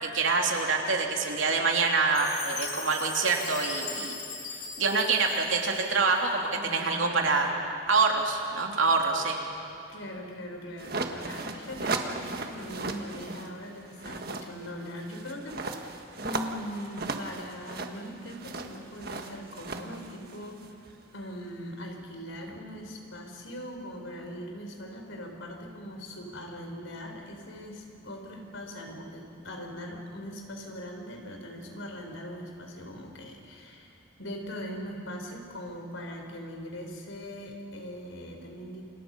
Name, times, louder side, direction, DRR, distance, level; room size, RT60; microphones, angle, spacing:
voice 1, 0.0-4.2 4.8-7.5 7.9-9.4, right 4 dB, 85° right, 1 dB, 3.0 m, -26 dB
Chime, 2.1-6.4, left 4 dB, 40° left, 5.9 m, -39 dB
voice 2, 6.5-7.3 9.9-20.8 21.1-38.8, equal, 85° left, 2 dB, 4.5 m, -41 dB
sound 1, 10.8-13.5 13.8-20.9, right 3 dB, 50° right, 1.6 m, -36 dB
29.5 x 27.0 x 5.5 m, 2.5 s
head